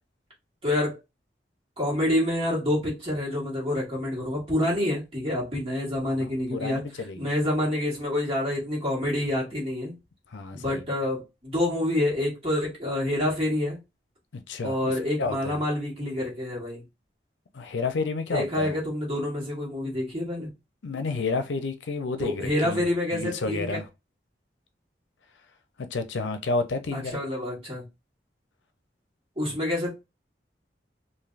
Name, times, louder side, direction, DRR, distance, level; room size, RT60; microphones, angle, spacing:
voice 1, 0.6-1.0 1.8-6.8 7.1-10.0 10.5-13.8 14.6-16.8 18.3-20.5 22.2-23.8 26.9-27.8 29.4-29.9, left 1 dB, 30° right, 1.4 m, -27 dB
voice 2, 6.0-7.3 10.3-10.8 14.3-15.6 17.5-18.7 20.8-22.8 23.1-23.9 25.8-27.2, left 3 dB, 85° left, 0.5 m, -31 dB
3.3 x 2.6 x 2.5 m
head